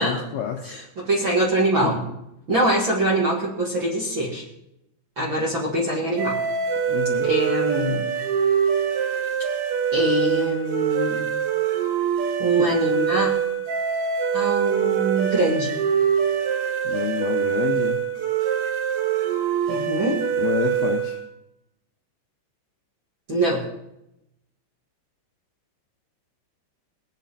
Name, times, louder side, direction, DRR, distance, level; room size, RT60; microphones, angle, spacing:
voice 1, 0.0-0.8 1.8-1.9 6.9-7.3 12.6-12.8 16.8-18.0 20.4-21.2, left 9 dB, 75° left, 2 dB, 2.3 m, -28 dB
voice 2, 0.6-2.0 2.5-4.4 5.2-6.4 7.2-8.1 9.9-11.3 12.4-13.3 14.3-15.8 19.7-20.2 23.3-23.6, right 1 dB, 40° right, -5 dB, 1.9 m, -23 dB
sound 1, 6.2-21.2, right 8 dB, 75° right, 4.1 m, -24 dB
21.0 x 10.5 x 4.2 m, 0.85 s
omnidirectional pair, 5.5 m